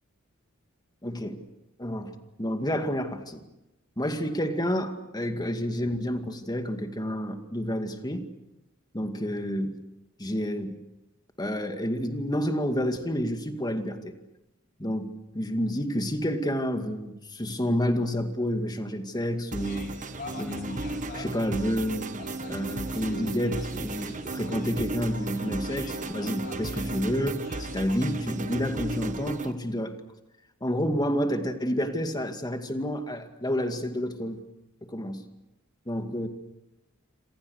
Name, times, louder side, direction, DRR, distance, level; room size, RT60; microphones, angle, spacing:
voice 1, 1.0-1.4 1.8-3.4 4.0-8.2 8.9-9.7 10.2-10.8 11.4-14.1 14.8-19.9 20.4-20.8 21.1-22.1 22.5-29.9 30.6-34.4 34.8-35.2 35.9-36.3, equal, 20° left, 7 dB, 2.2 m, -29 dB
sound 1, 19.5-29.5, right 2 dB, 40° right, 1.4 m, -35 dB
sound 2, 19.6-28.0, left 3 dB, 45° left, 3.7 m, -46 dB
27.5 x 27.0 x 6.6 m, 0.91 s
head